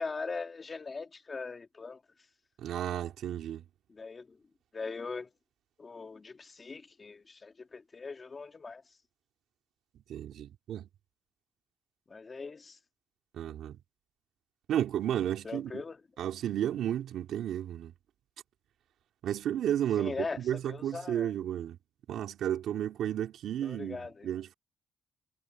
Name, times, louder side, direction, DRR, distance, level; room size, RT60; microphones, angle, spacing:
voice 1, 0.0-2.0 3.9-4.4 4.7-5.3 5.8-8.8 12.1-12.8 15.4-16.0 20.0-20.4 20.6-21.3 23.6-24.4, left 4 dB, 30° left, 2.2 m, -40 dB
voice 2, 2.6-3.6 10.1-10.9 13.3-13.8 14.7-15.8 16.2-17.9 19.2-21.8 22.1-24.5, right 10 dB, 75° right, 3.0 m, -33 dB
cardioid pair, 90°, 0 cm